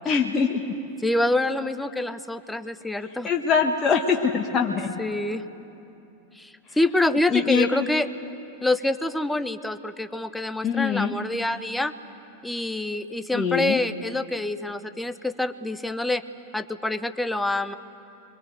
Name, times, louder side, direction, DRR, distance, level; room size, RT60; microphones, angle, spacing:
voice 1, 0.0-0.6 3.2-5.0 7.3-7.9 10.6-11.1 13.3-13.8, left 6 dB, 25° left, 1 dB, 1.5 m, -23 dB
voice 2, 1.0-3.3 5.0-5.4 6.3-8.1 8.6-11.9 12.4-16.2 16.5-17.8, left 2 dB, 5° left, 12 dB, 1.0 m, -26 dB
24.5 x 23.5 x 8.1 m, 2.8 s
figure-of-eight pair, 90°, 0 cm